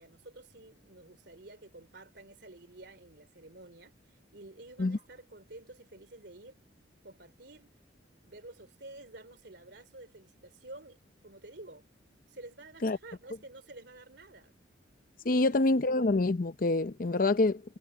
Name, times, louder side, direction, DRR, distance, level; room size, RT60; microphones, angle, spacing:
voice 1, 0.0-6.6 7.0-7.7 8.2-11.9 12.3-14.5 15.2-15.6, right 2 dB, 60° right, 3.4 m, -51 dB
voice 2, 15.2-17.6, left 2 dB, 45° left, 0.6 m, -26 dB
head